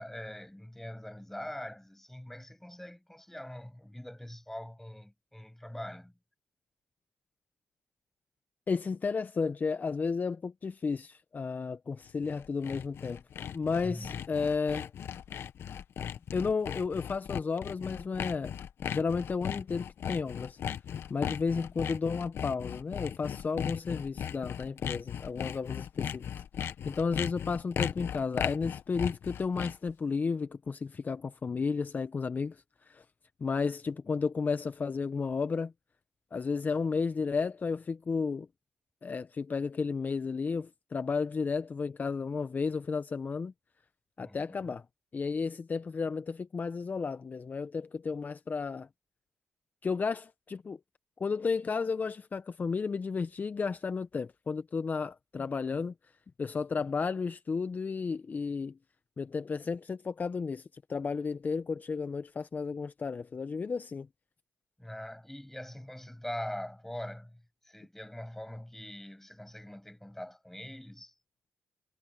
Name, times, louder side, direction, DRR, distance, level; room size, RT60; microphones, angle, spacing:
voice 1, 0.0-6.1 13.8-14.2 44.2-44.8 64.8-71.1, left 1 dB, 5° left, 7.1 m, -43 dB
voice 2, 8.7-13.2 13.5-14.9 16.3-18.5 18.9-20.6 21.1-33.0 33.4-35.7 36.3-38.5 39.0-43.5 44.2-44.8 45.1-48.9 49.8-50.8 51.2-55.9 56.4-58.8 59.2-64.1, left 5 dB, 40° left, 0.9 m, -33 dB
Sawing, 12.1-29.9, left 9 dB, 70° left, 1.1 m, -37 dB
supercardioid pair, 55°, 4 cm